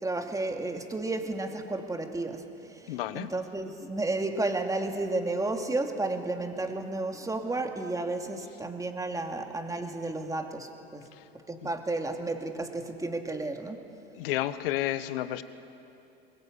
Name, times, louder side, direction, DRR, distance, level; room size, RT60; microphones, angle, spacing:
voice 1, 0.0-11.1 11.5-13.8, right 2 dB, 10° right, 4 dB, 2.5 m, -32 dB
voice 2, 2.9-3.3 11.6-11.7 14.2-15.4, left 14 dB, 75° left, 13 dB, 1.2 m, -31 dB
22.5 x 21.5 x 8.7 m, 2.7 s
hypercardioid pair, 85°, 29 cm